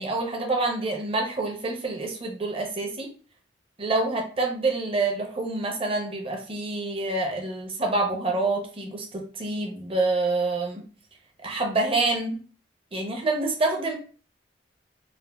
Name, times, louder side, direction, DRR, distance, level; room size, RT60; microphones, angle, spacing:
voice 1, 0.0-3.1 3.8-10.8 11.4-12.4 12.9-13.9, right 2 dB, 30° right, 1 dB, 0.6 m, -27 dB
3.3 x 2.1 x 2.2 m, 0.40 s
head